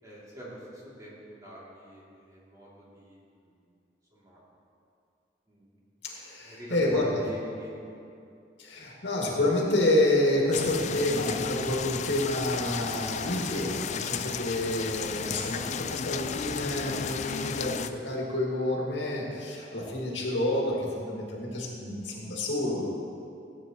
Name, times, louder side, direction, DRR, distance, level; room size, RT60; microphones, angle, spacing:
voice 1, 0.0-3.7 4.1-4.4 5.5-5.7 6.4-8.0, equal, 20° right, -7 dB, 2.7 m, -46 dB
voice 2, 6.0-7.2 8.6-22.9, left 1 dB, 90° left, -3 dB, 2.1 m, -28 dB
sound 1, 10.5-17.9, left 7 dB, 40° left, 0.3 m, -34 dB
16.5 x 9.0 x 3.0 m, 2.5 s
head